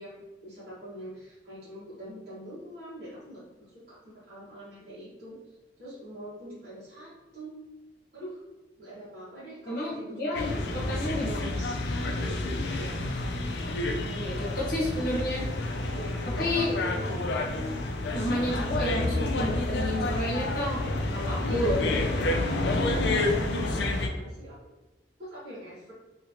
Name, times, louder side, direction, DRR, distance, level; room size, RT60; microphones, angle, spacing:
voice 1, 0.0-5.3 5.8-7.5 8.1-8.4 8.8-10.4 11.0-13.0 15.9-17.1 21.4-21.9 22.7-24.6 25.2-25.9, right 1 dB, 60° right, -10 dB, 1.4 m, -44 dB
voice 2, 9.7-10.5 10.7-11.5 14.0-15.5 16.4-16.7 18.1-20.8 21.1-22.9, left 1 dB, 55° left, -3 dB, 1.1 m, -31 dB
sound 1, 10.3-24.1, left 2 dB, 70° left, 0.4 m, -29 dB
2.9 x 2.9 x 2.8 m, 1.1 s
head